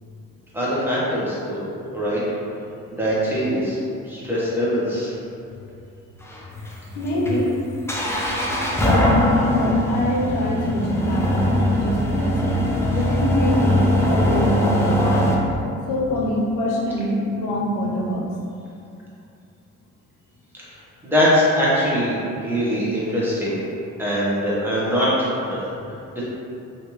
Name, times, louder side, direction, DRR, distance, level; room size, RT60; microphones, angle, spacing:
voice 1, 0.5-1.6 1.9-2.2 2.9-3.8 4.0-5.1 20.5-20.6 21.0-23.6 24.0-25.7 26.1-26.2, equal, 5° right, -9 dB, 1.1 m, -22 dB
sound 1, 6.2-15.3, equal, 10° left, 0.5 m, -21 dB
voice 2, 6.9-7.9 8.8-12.4 12.9-15.3 15.9-18.3 25.8-26.0, left 1 dB, 80° left, -3 dB, 0.6 m, -24 dB
3.2 x 2.6 x 3.0 m, 2.6 s
cardioid pair, 90°, 30 cm